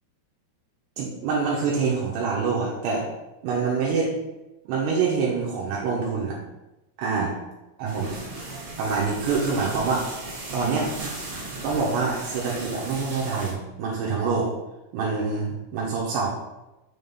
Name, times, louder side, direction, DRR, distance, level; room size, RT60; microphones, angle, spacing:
voice 1, 1.0-3.1 3.4-4.2 4.7-6.4 7.0-7.3 7.8-8.3 8.8-10.9 11.1-11.2 11.6-14.5 14.9-16.3, right 4 dB, 80° right, -3 dB, 3.1 m, -26 dB
sound 1, 7.8-13.5, right 2 dB, 50° right, 1.7 m, -36 dB
6.9 x 3.8 x 5.5 m, 0.99 s
omnidirectional pair, 5.1 m